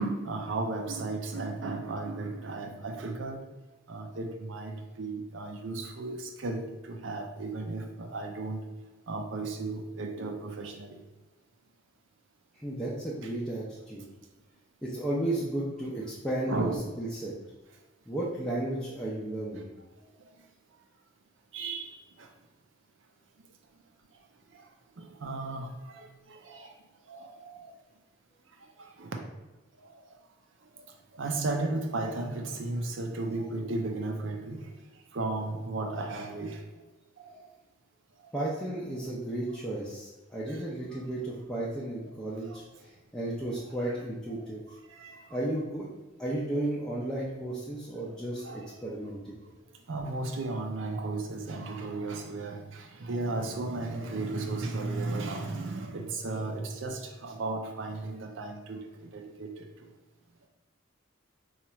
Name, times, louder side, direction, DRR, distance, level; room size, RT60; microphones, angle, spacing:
voice 1, 0.0-3.4 3.9-8.6 9.1-11.0 16.5-16.9 21.5-22.3 25.0-26.7 27.1-27.7 28.8-29.2 29.8-30.1 31.1-34.6 35.1-36.6 37.2-37.5 42.5-42.6 44.9-45.2 48.4-48.7 49.9-59.7, right 2 dB, 70° right, 3 dB, 0.5 m, -35 dB
voice 2, 12.5-14.0 14.8-16.7 17.0-17.3 18.1-19.7 38.3-44.6 45.3-45.9 46.2-49.4, right 1 dB, 5° left, -7 dB, 0.5 m, -33 dB
2.9 x 2.4 x 4.2 m, 1.1 s
head